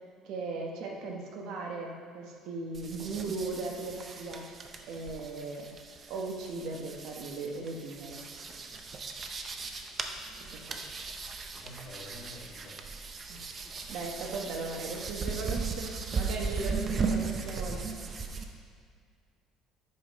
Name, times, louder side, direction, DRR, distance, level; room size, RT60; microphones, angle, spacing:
voice 1, 0.2-4.5 4.8-5.7 6.1-8.2 10.4-10.8 13.3-13.4 13.9-18.0, right 3 dB, 60° right, 1 dB, 1.1 m, -38 dB
sound 1, 2.7-18.5, right 4 dB, 30° right, 0.6 m, -37 dB
voice 2, 11.6-12.8, left 1 dB, 55° left, -4 dB, 2.0 m, -49 dB
8.0 x 5.4 x 5.2 m, 2.1 s
cardioid pair, 155°, 0 cm